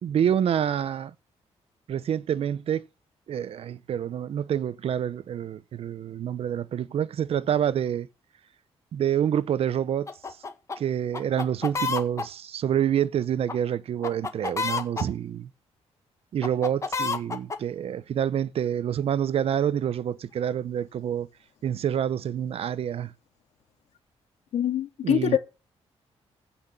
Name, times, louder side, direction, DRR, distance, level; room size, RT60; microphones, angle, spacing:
voice 1, 0.0-1.1 1.9-2.8 3.3-8.1 8.9-10.1 10.8-15.5 16.3-21.3 21.6-23.1 25.0-25.4, right 9 dB, 60° right, 0.7 m, -27 dB
sound 1, 10.1-10.8 11.1-12.2 13.5-13.6 14.0-15.0 16.4-17.6, left 4 dB, 25° left, 1.7 m, -29 dB
voice 2, 24.5-25.4, left 10 dB, 85° left, 2.3 m, -24 dB
16.0 x 5.9 x 7.4 m
wide cardioid pair, 145°, 11 cm